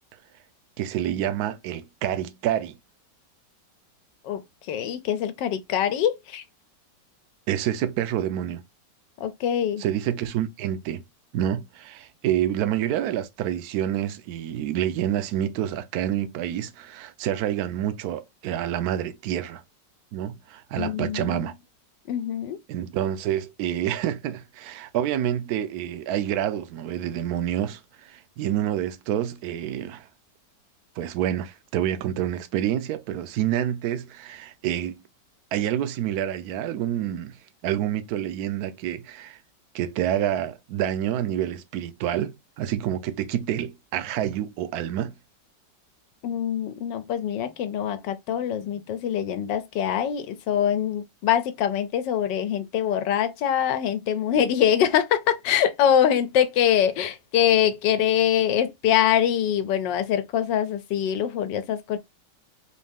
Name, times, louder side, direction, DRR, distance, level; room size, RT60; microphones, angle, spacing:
voice 1, 0.8-2.8 7.5-8.6 9.8-11.0 11.3-19.6 20.1-21.5 22.7-30.1 31.0-35.0 35.5-37.4 37.6-39.4 39.7-45.1, right 11 dB, 70° right, 1.0 m, -28 dB
voice 2, 4.2-6.4 9.2-9.8 20.8-21.5 22.1-22.6 46.2-62.0, left 9 dB, 80° left, 1.3 m, -24 dB
3.9 x 2.7 x 3.5 m
omnidirectional pair, 2.0 m